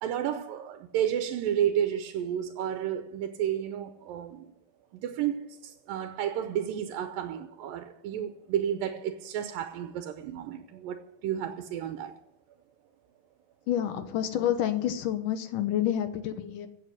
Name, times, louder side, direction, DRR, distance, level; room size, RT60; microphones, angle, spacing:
voice 1, 0.0-4.5 4.9-12.1, right 10 dB, 85° right, 2.6 m, -31 dB
voice 2, 13.7-16.7, left 11 dB, 75° left, 2.6 m, -28 dB
16.0 x 8.2 x 7.9 m
omnidirectional pair, 3.9 m